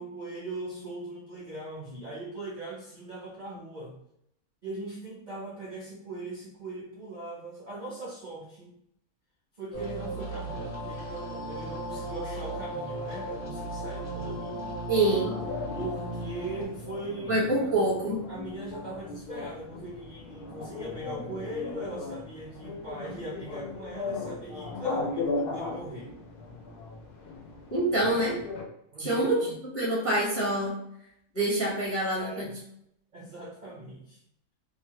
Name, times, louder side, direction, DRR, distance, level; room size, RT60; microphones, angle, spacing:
voice 1, 0.0-4.0 4.6-8.8 9.6-14.7 15.7-17.5 18.3-26.1 28.9-29.5 32.2-32.5 33.1-34.2, right 2 dB, 75° right, -5 dB, 0.4 m, -40 dB
sound 1, 9.7-16.7, right 1 dB, 35° left, 1.0 m, -36 dB
sound 2, 14.9-28.6, left 3 dB, 80° left, 1.2 m, -37 dB
voice 2, 14.9-15.4 17.3-18.2 27.7-28.4 29.0-29.4 29.7-30.7 31.3-32.5, right 1 dB, 20° left, -5 dB, 0.4 m, -26 dB
3.0 x 2.2 x 2.8 m, 0.75 s
omnidirectional pair, 1.7 m